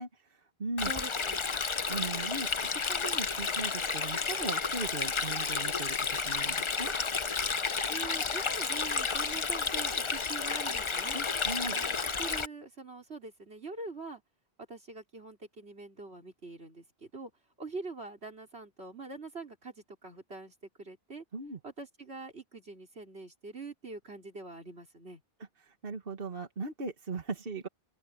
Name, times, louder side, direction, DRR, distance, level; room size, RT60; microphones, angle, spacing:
voice 1, 0.0-0.9 1.9-6.9 11.1-11.8 21.3-21.6 25.6-27.7, right 3 dB, 60° right, 1.9 m, -39 dB
Stream, 0.8-12.5, left 5 dB, 35° left, 0.7 m, -31 dB
voice 2, 0.8-1.4 7.9-11.2 11.6-14.2 14.7-17.3 17.6-21.2 21.6-25.2, right 3 dB, 90° right, 4.4 m, -44 dB
open air
omnidirectional pair, 1.1 m